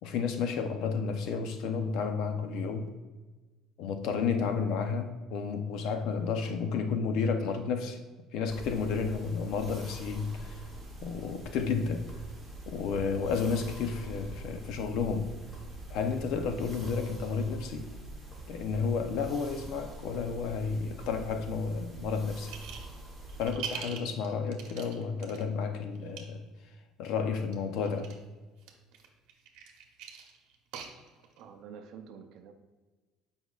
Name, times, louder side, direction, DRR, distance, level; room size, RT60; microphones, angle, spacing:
voice 1, 0.0-2.9 3.8-8.0 8.3-10.6 11.0-12.1 12.7-15.4 15.9-17.9 18.5-22.5 23.4-26.4 27.0-28.1, left 5 dB, 55° left, 7 dB, 0.6 m, -31 dB
sound 1, 8.5-23.5, right 2 dB, ahead, 1.1 m, -44 dB
sound 2, 22.5-22.9 23.3-25.4 25.9-26.2 27.4-28.2 28.6-31.4, right 7 dB, 70° right, 0.9 m, -43 dB
voice 2, 31.2-32.5, right 7 dB, 50° right, 6 dB, 0.6 m, -48 dB
8.1 x 5.3 x 2.4 m, 1.3 s
cardioid pair, 180°, 0 cm